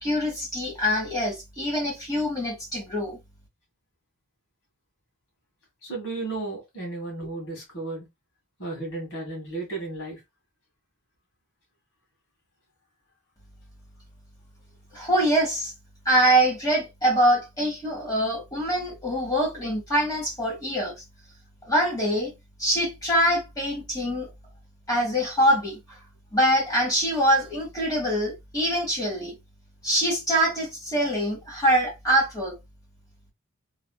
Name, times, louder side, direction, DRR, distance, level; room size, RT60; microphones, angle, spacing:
voice 1, 0.0-3.2 14.9-15.7 16.0-20.9 21.6-22.3 22.6-24.3 24.9-25.8 26.3-29.3 29.8-32.5, equal, 15° left, 1.4 m, -24 dB
voice 2, 5.8-8.1 8.6-10.2, right 2 dB, 65° left, 1.8 m, -34 dB
3.3 x 2.7 x 2.3 m
head